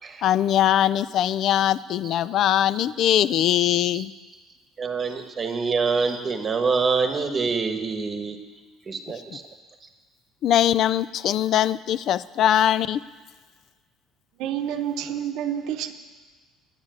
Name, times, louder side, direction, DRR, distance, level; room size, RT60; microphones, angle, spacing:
voice 1, 0.2-4.1 10.4-13.0, left 11 dB, 55° left, 0.3 m, -21 dB
voice 2, 4.8-8.4 8.9-9.4, right 4 dB, 30° right, 1.2 m, -25 dB
voice 3, 14.4-15.9, right 10 dB, 70° right, 0.8 m, -28 dB
9.5 x 7.3 x 9.2 m
cardioid pair, 120°, 0 cm